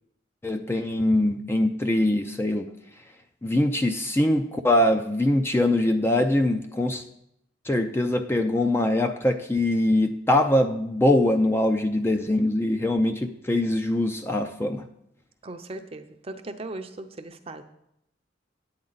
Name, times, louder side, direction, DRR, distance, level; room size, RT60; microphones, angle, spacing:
voice 1, 0.4-2.7 3.4-7.0 7.7-14.9, left 1 dB, 15° left, 6 dB, 0.4 m, -23 dB
voice 2, 15.4-17.6, right 2 dB, 30° right, 7 dB, 0.6 m, -38 dB
10.0 x 8.7 x 4.0 m, 0.77 s
head